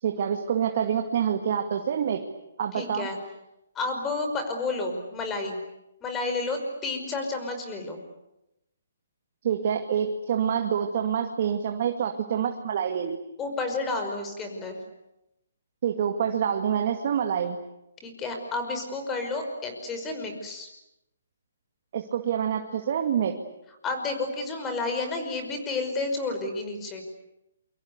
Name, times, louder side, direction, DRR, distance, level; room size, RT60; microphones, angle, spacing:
voice 1, 0.0-2.2 2.6-3.1 9.4-13.2 15.8-17.6 21.9-23.4, right 8 dB, 50° right, 4 dB, 2.2 m, -26 dB
voice 2, 2.7-3.2 3.8-5.6 6.0-8.0 13.4-14.8 18.0-20.7 23.8-27.0, left 3 dB, 15° left, 5 dB, 5.4 m, -31 dB
28.0 x 24.5 x 8.2 m, 0.88 s
hypercardioid pair, 150°, 0 cm